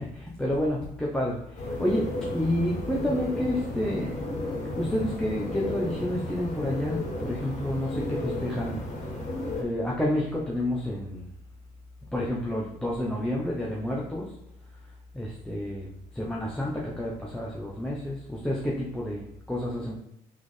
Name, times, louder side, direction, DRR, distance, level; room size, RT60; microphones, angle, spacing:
voice 1, 0.0-4.2 4.8-8.8 9.6-11.2 12.1-14.3 15.1-19.9, left 1 dB, 5° left, -4 dB, 0.7 m, -30 dB
sound 1, 1.6-9.6, left 1 dB, 45° left, 1.4 m, -33 dB
4.1 x 3.5 x 3.2 m, 0.74 s
cardioid pair, 110°, 17 cm